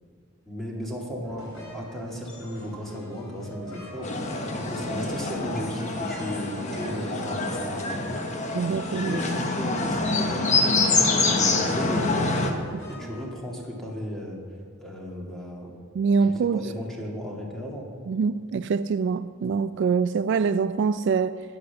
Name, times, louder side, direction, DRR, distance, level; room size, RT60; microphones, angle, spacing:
voice 1, 0.5-4.1 4.5-8.3 9.0-12.4 12.9-14.4 14.8-15.7 16.2-17.9, equal, ahead, 2.4 m, -35 dB
sound 1, 1.2-13.9, equal, 80° left, 4.1 m, -45 dB
sound 2, 4.0-12.5, left 3 dB, 35° left, 1.1 m, -26 dB
voice 2, 8.5-9.2 12.7-12.8 16.0-16.6 18.1-21.4, right 5 dB, 60° right, 0.3 m, -24 dB
10.5 x 9.8 x 7.1 m
head